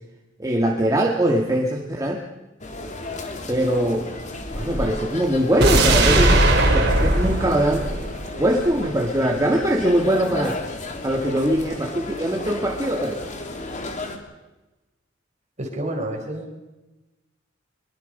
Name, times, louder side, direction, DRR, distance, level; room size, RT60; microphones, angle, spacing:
voice 1, 0.4-2.2 3.5-4.1 4.5-7.9 8.4-10.6 11.0-13.2, right 1 dB, 20° right, 0 dB, 2.0 m, -22 dB
sound 1, 2.6-14.2, left 2 dB, 40° left, 3.0 m, -33 dB
sound 2, 5.6-8.7 9.1-9.2, right 2 dB, 60° right, 4.2 m, -19 dB
voice 2, 15.6-16.6, right 1 dB, 35° right, 3 dB, 4.7 m, -29 dB
24.0 x 22.5 x 5.6 m, 1.1 s
head